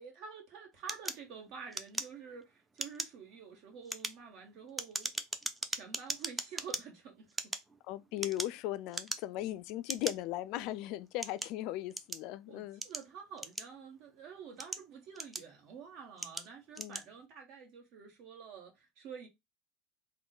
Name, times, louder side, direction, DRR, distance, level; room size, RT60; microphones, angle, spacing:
voice 1, 0.0-5.1 5.7-7.3 12.5-19.3, right 6 dB, 55° right, 1.3 m, -49 dB
sound 1, 0.9-2.4 2.7-3.2 3.7-6.8 7.3-8.6 8.9-9.4 9.9-10.1 10.8-12.3 12.8-14.0 14.4-15.7 16.2-16.5 16.7-17.1, right 2 dB, 10° right, 0.5 m, -39 dB
voice 2, 7.9-12.8 16.8-17.0, left 14 dB, 55° left, 0.3 m, -38 dB
3.7 x 2.2 x 3.7 m
hypercardioid pair, 80°, 0 cm